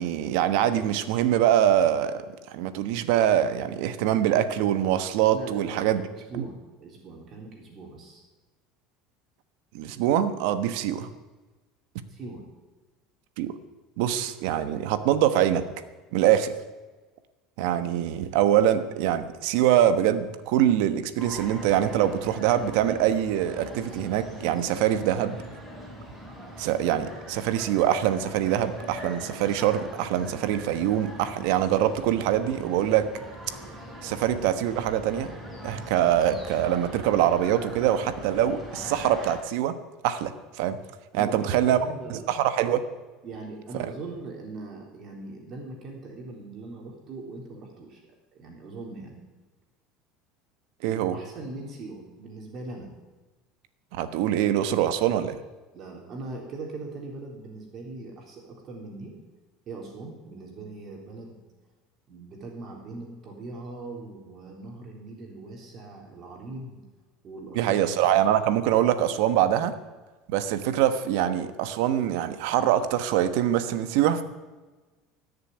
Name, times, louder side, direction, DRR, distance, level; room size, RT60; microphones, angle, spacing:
voice 1, 0.0-2.2 2.5-6.0 9.7-11.1 13.4-13.5 14.0-15.6 16.1-16.6 17.6-25.4 26.6-33.1 34.0-39.8 40.0-40.8 41.1-41.8 42.1-42.8 50.8-51.2 54.0-55.3 67.5-69.7 70.3-74.2, right 11 dB, 75° right, 10 dB, 1.2 m, -24 dB
voice 2, 5.3-8.2 10.7-10.8 12.1-12.4 41.1-42.3 43.2-48.0 48.3-49.2 50.8-52.9 55.7-59.2 59.7-61.4 62.1-66.8 67.2-67.7, right 3 dB, 40° right, -1 dB, 3.6 m, -40 dB
sound 1, 21.2-39.4, equal, 5° right, 5.8 m, -41 dB
18.0 x 6.9 x 9.9 m, 1.2 s
supercardioid pair, 125°, 0 cm